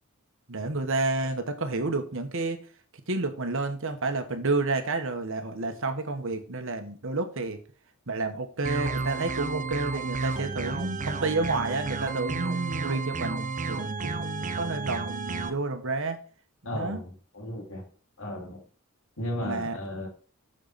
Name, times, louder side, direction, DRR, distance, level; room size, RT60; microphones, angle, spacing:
voice 1, 0.5-2.6 3.1-7.6 8.1-16.2 16.7-17.0 19.4-19.8, right 3 dB, 65° right, 7 dB, 1.3 m, -30 dB
sound 1, 8.6-15.5, right 4 dB, 35° right, 0.7 m, -32 dB
voice 2, 16.6-17.8 18.2-18.6 19.2-20.1, left 1 dB, 65° left, 1 dB, 3.0 m, -35 dB
6.9 x 6.7 x 4.2 m, 0.40 s
head